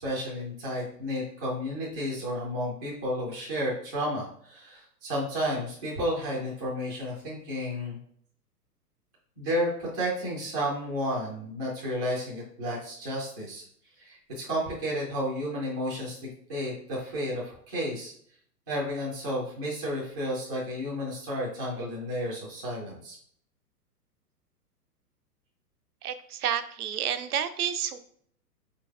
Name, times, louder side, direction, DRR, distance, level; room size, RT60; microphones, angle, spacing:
voice 1, 0.0-8.0 9.4-13.6 14.0-16.2 16.5-18.1 18.7-23.2, equal, 15° right, -6 dB, 0.3 m, -32 dB
voice 2, 26.0-28.0, right 9 dB, 65° right, 11 dB, 0.6 m, -30 dB
4.5 x 3.9 x 2.3 m, 0.62 s
figure-of-eight pair, 115°, 48 cm